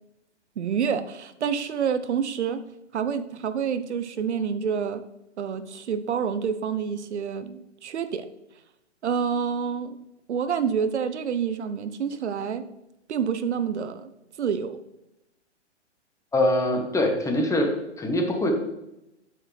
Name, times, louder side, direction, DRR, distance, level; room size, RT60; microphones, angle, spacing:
voice 1, 0.6-2.6 2.9-5.0 5.4-8.3 9.0-10.0 10.3-12.7 13.1-14.1 14.4-14.8, right 7 dB, 70° right, 11 dB, 0.8 m, -28 dB
voice 2, 16.3-17.7 18.0-18.5, left 1 dB, 10° left, 3 dB, 1.2 m, -23 dB
8.8 x 8.7 x 3.3 m, 0.89 s
figure-of-eight pair, 120°, 36 cm